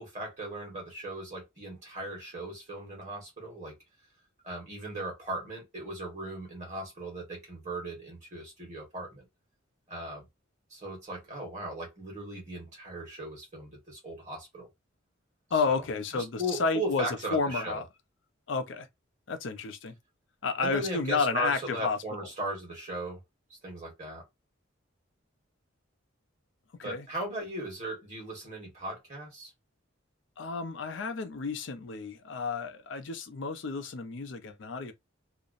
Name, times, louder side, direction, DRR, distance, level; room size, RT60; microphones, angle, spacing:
voice 1, 0.0-3.7 4.4-9.3 9.9-10.2 10.7-14.7 15.7-15.8 16.1-17.8 20.6-23.2 23.6-24.2 26.8-29.5, right 1 dB, 35° right, 1.2 m, -37 dB
voice 2, 15.5-17.1 17.3-17.9 18.5-18.9 19.3-19.9 20.4-22.0 26.8-27.1 30.4-34.9, left 4 dB, 65° left, 0.5 m, -31 dB
2.5 x 2.0 x 2.4 m
head